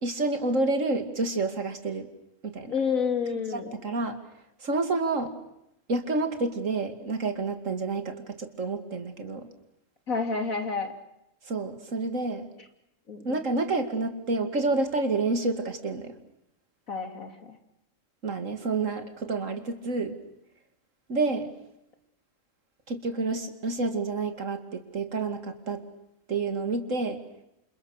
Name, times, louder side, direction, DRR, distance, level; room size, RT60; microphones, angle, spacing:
voice 1, 0.0-2.1 2.4-2.7 3.5-4.2 4.6-5.3 5.9-9.5 11.4-12.5 13.2-16.2 18.2-20.2 21.1-21.5 22.9-25.8 26.3-27.2, right 3 dB, 70° right, 7 dB, 2.8 m, -29 dB
voice 2, 2.7-3.8 10.1-10.9 13.1-13.3 16.9-17.6, left 5 dB, 90° left, 6 dB, 3.4 m, -29 dB
28.5 x 28.0 x 6.6 m, 0.83 s
omnidirectional pair, 1.4 m